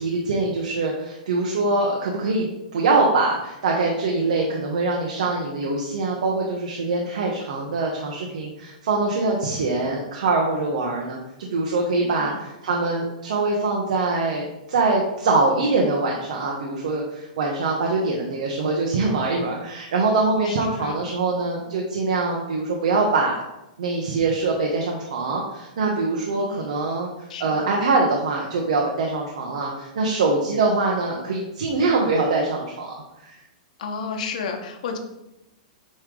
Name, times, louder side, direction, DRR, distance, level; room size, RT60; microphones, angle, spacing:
voice 1, 0.0-23.4 23.8-27.1 27.4-33.4, right 3 dB, 70° right, -1 dB, 1.1 m, -23 dB
voice 2, 12.0-12.4 20.4-21.0 26.3-26.7 27.3-27.8 33.8-35.0, left 5 dB, 65° left, 4 dB, 1.1 m, -32 dB
8.5 x 3.2 x 3.8 m, 0.92 s
hypercardioid pair, 160°, 4 cm